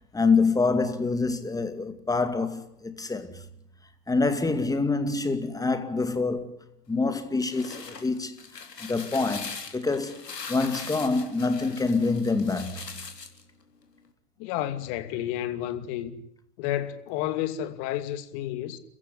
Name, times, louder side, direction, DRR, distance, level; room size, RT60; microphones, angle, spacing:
voice 1, 0.1-3.4 4.1-6.6 6.9-8.4 8.8-10.2 10.5-13.0, left 3 dB, 5° left, 2.3 m, -26 dB
sound 1, 7.3-13.4, left 5 dB, 85° left, 4.0 m, -41 dB
voice 2, 14.4-16.1 16.6-18.8, left 12 dB, 40° left, 2.7 m, -31 dB
29.5 x 15.5 x 9.8 m
hypercardioid pair, 115°, 48 cm